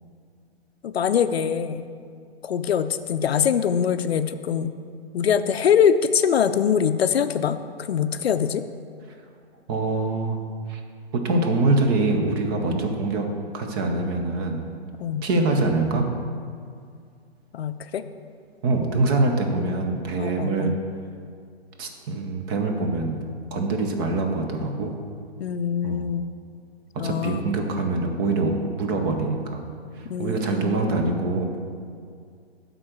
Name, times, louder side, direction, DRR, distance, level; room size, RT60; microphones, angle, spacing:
voice 1, 0.8-1.8 2.4-4.7 5.1-8.6 15.0-15.3 17.5-18.0 20.2-20.7 25.4-26.3 27.0-27.5 30.1-30.8, left 7 dB, 70° left, 11 dB, 0.5 m, -23 dB
voice 2, 9.7-10.4 10.7-10.8 11.1-13.3 13.5-14.6 15.2-16.2 18.6-20.7 21.8-23.2 23.5-24.9 25.8-26.0 26.9-29.6 30.0-31.5, right 3 dB, 20° right, 3 dB, 0.6 m, -24 dB
9.3 x 3.9 x 6.5 m, 2.2 s
hypercardioid pair, 135°, 32 cm